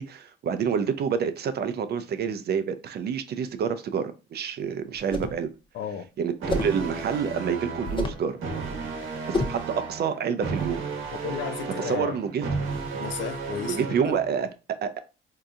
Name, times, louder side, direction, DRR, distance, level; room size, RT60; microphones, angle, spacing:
voice 1, 0.0-5.5 6.2-8.3 9.3-10.8 11.8-12.4 13.6-15.0, right 7 dB, 55° right, 0.5 m, -28 dB
sound 1, 5.0-5.4 6.5-6.8 7.8-8.3 9.3-9.7, left 2 dB, 25° left, 0.5 m, -29 dB
voice 2, 5.7-6.1 11.2-12.2 12.9-14.2, left 7 dB, 70° left, 0.5 m, -34 dB
sound 2, 6.4-14.4, right 4 dB, 85° right, 1.0 m, -33 dB
3.8 x 2.7 x 2.4 m
cardioid pair, 90°, 20 cm